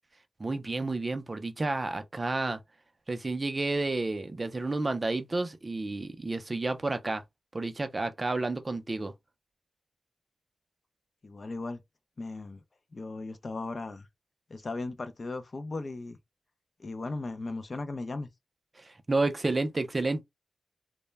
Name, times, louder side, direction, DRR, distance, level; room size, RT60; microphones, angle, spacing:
voice 1, 0.4-2.6 3.1-7.2 7.5-9.1 18.8-20.2, right 2 dB, 30° right, 0.4 m, -30 dB
voice 2, 11.2-11.8 12.2-12.6 12.9-14.1 14.5-16.2 16.8-18.3, left 3 dB, 40° left, 0.4 m, -37 dB
2.1 x 2.0 x 3.2 m
wide cardioid pair, 120°, 0 cm